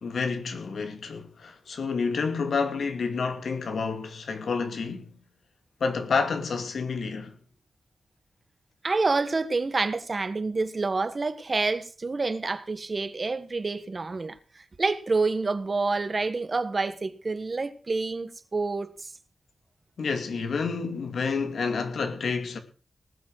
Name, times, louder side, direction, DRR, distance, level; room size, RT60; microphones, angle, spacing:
voice 1, 0.0-5.1 5.8-7.4 20.0-22.6, left 5 dB, 90° left, 2.5 m, -29 dB
voice 2, 8.8-19.1, right 3 dB, 40° right, 1.5 m, -28 dB
19.0 x 7.4 x 6.5 m
wide cardioid pair, 105°, 0 cm